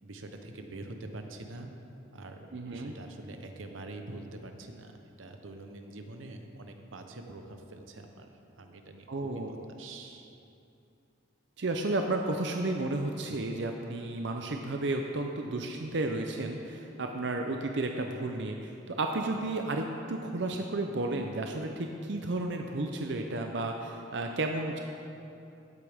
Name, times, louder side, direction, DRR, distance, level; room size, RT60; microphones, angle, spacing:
voice 1, 0.0-1.7 2.1-4.9 5.2-8.3 8.6-10.4, right 2 dB, 90° right, 5 dB, 0.9 m, -45 dB
voice 2, 2.5-2.9 9.1-9.6 11.6-24.8, right 2 dB, 60° right, 3 dB, 0.6 m, -32 dB
16.0 x 8.3 x 3.6 m, 2.8 s
head